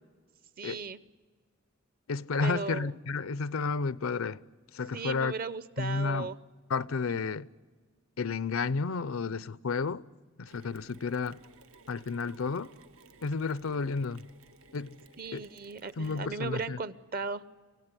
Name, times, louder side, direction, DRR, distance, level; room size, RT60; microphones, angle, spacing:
voice 1, 0.6-1.0 2.4-2.9 4.9-6.4 7.1-7.3 15.2-17.4, right 4 dB, 45° right, 0.8 m, -37 dB
voice 2, 2.1-4.4 4.7-5.3 5.8-6.3 6.7-7.5 8.2-10.0 10.4-11.4 11.9-12.7 13.2-14.3 14.7-15.0 15.3-15.5 16.0-16.8, left 4 dB, 90° left, 0.6 m, -31 dB
Mechanisms, 10.5-16.7, right 3 dB, 85° right, 1.2 m, -58 dB
26.5 x 16.5 x 9.7 m
head